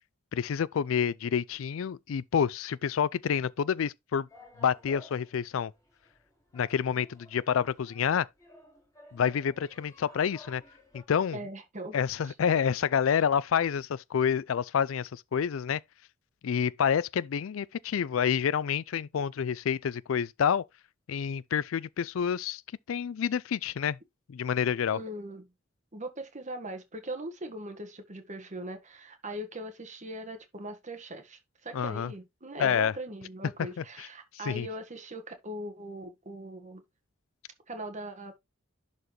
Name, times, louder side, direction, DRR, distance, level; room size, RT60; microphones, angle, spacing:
voice 1, 0.3-4.3 4.6-5.7 6.5-8.3 9.1-10.6 10.9-11.4 11.9-15.8 16.4-20.6 21.1-22.6 22.9-24.0 24.3-25.0 31.7-32.1 32.6-32.9 33.8-34.1 34.5-34.7, left 7 dB, 75° left, 0.4 m, -28 dB
sound 1, 4.3-11.0, left 2 dB, 15° left, 3.5 m, -55 dB
voice 2, 11.3-12.0 12.2-12.3 13.1-13.2 24.9-25.5 25.9-36.8 37.7-38.4, right 1 dB, 35° right, 1.5 m, -40 dB
11.0 x 4.1 x 3.1 m
head